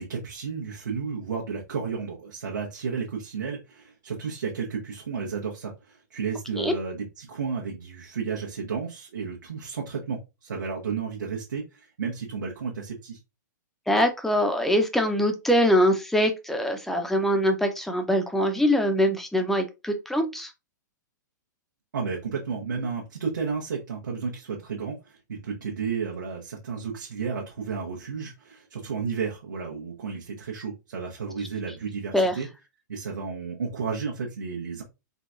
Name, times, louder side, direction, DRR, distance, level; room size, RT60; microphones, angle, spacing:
voice 1, 0.0-13.2 21.9-32.5 32.9-34.8, right 5 dB, 75° right, -3 dB, 0.8 m, -32 dB
voice 2, 13.9-20.5 32.1-32.4, equal, 5° left, 5 dB, 0.6 m, -23 dB
3.8 x 2.2 x 2.4 m, 0.26 s
hypercardioid pair, 110°, 10 cm